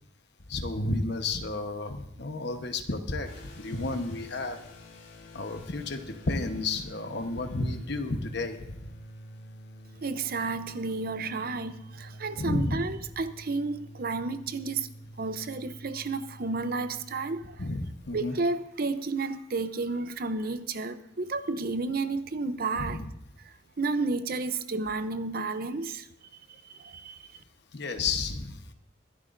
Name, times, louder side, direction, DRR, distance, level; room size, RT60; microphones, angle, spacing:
voice 1, 0.5-4.6 5.3-8.8 12.4-12.8 17.6-18.3 22.8-23.0 27.7-28.6, left 2 dB, 60° left, 1.1 m, -31 dB
sound 1, 3.2-17.6, equal, 80° left, 4.0 m, -48 dB
voice 2, 10.0-14.9 15.2-17.7 18.1-23.0 23.4-26.1 26.3-27.4, right 3 dB, 50° right, 0.7 m, -32 dB
23.5 x 11.0 x 2.6 m
head